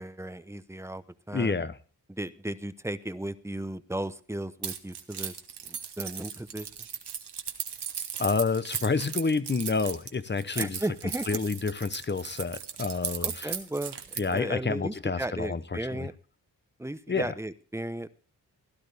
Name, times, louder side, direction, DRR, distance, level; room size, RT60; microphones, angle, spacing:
voice 1, 0.0-1.6 2.1-5.3 5.6-6.7 10.6-11.4 13.2-14.0 14.3-16.1 16.8-18.1, right 1 dB, 5° right, 0.8 m, -35 dB
voice 2, 1.3-1.8 8.2-10.8 11.3-13.5 14.2-16.1 17.1-17.3, left 4 dB, 25° left, 0.9 m, -29 dB
Keys jangling, 4.6-14.4, right 8 dB, 80° right, 1.4 m, -36 dB
16.5 x 12.0 x 3.4 m
cardioid pair, 70°, 40 cm